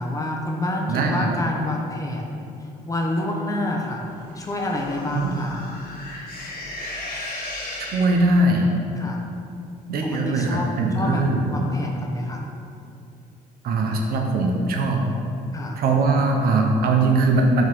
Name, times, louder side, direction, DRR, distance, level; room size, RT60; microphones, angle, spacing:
voice 1, 0.0-2.5 2.9-4.0 4.4-5.7 9.0-9.3 10.0-11.2 11.5-12.4 15.5-15.8, left 1 dB, 20° left, 0 dB, 0.8 m, -28 dB
voice 2, 0.9-1.3 5.1-5.3 7.9-8.7 9.9-11.6 13.6-15.0 15.8-17.6, right 2 dB, 65° right, 2 dB, 0.8 m, -20 dB
sound 1, 4.3-8.6, left 1 dB, 65° left, 1.5 m, -35 dB
5.4 x 3.8 x 4.7 m, 2.6 s
cardioid pair, 110°, 17 cm